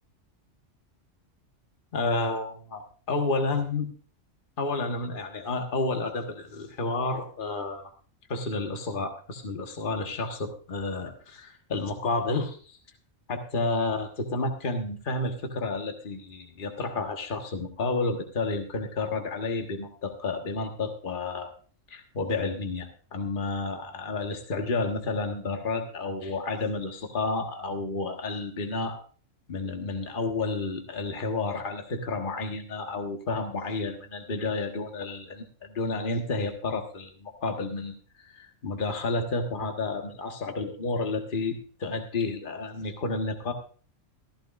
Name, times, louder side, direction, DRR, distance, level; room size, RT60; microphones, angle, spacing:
voice 1, 1.9-2.8 3.1-3.9 4.6-7.9 8.3-12.8 13.3-21.5 21.9-29.0 29.5-43.5, left 3 dB, 45° left, 4 dB, 1.5 m, -31 dB
15.0 x 14.5 x 2.5 m, 0.40 s
omnidirectional pair, 1.3 m